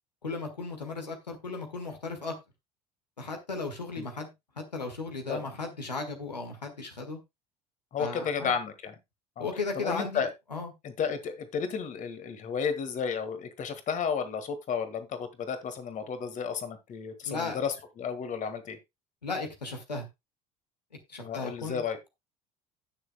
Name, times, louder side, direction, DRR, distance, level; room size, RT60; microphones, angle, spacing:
voice 1, 0.2-2.3 3.2-7.2 8.0-8.5 9.4-10.7 17.3-17.6 19.2-20.1 21.1-21.8, left 3 dB, 85° left, 1.8 m, -36 dB
voice 2, 7.9-9.0 9.4-9.5 9.8-10.3 10.8-18.8 21.2-22.0, left 6 dB, 40° left, 1.7 m, -32 dB
17.5 x 6.4 x 2.3 m
figure-of-eight pair, 60°, 21 cm